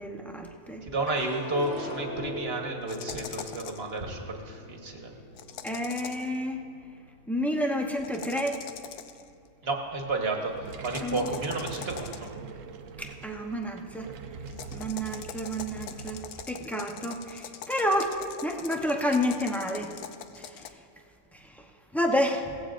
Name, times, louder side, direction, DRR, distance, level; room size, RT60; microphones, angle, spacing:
voice 1, 0.0-0.9 5.6-6.6 7.3-8.6 11.0-11.3 13.0-14.1 14.7-16.2 16.5-19.9 20.4-20.7 21.3-21.7 21.9-22.5, equal, ahead, 1 dB, 0.5 m, -30 dB
voice 2, 0.8-5.1 9.6-12.3, right 2 dB, 45° right, 2 dB, 1.4 m, -32 dB
sound 1, 1.1-7.5 7.9-8.6, left 1 dB, 50° left, 1.4 m, -42 dB
sound 2, 2.9-3.9 5.4-6.4 8.0-9.3 10.8-12.4 14.5-20.7, left 9 dB, 80° left, 1.1 m, -42 dB
sound 3, 10.4-16.4, right 5 dB, 70° right, 0.9 m, -43 dB
17.0 x 15.0 x 2.5 m, 2.6 s
omnidirectional pair, 1.6 m